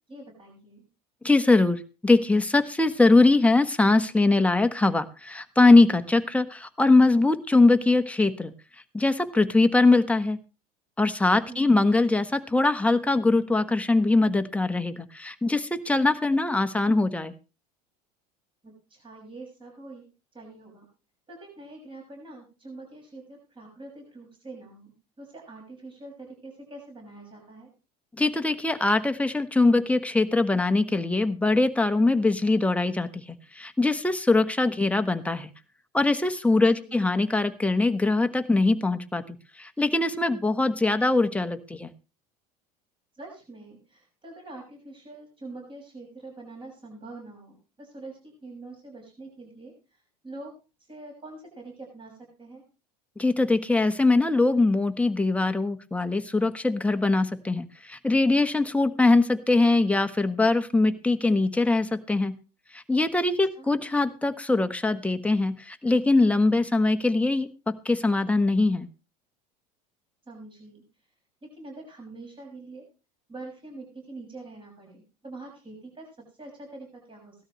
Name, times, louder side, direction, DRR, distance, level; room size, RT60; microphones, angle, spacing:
voice 1, 0.1-0.8 11.5-11.8 18.6-20.0 20.3-20.9 21.3-24.9 25.2-27.7 36.6-37.1 43.1-49.7 50.2-50.5 50.9-52.6 63.6-63.7 70.3-70.8 71.4-72.8 73.3-77.3, right 2 dB, 25° right, 1 dB, 6.4 m, -44 dB
voice 2, 1.2-8.5 8.9-10.4 11.0-17.3 28.2-33.2 33.5-35.5 35.9-41.9 53.2-62.3 62.7-68.9, left 3 dB, 5° left, 8 dB, 1.3 m, -22 dB
17.5 x 12.5 x 3.2 m, 0.32 s
hypercardioid pair, 90°, 20 cm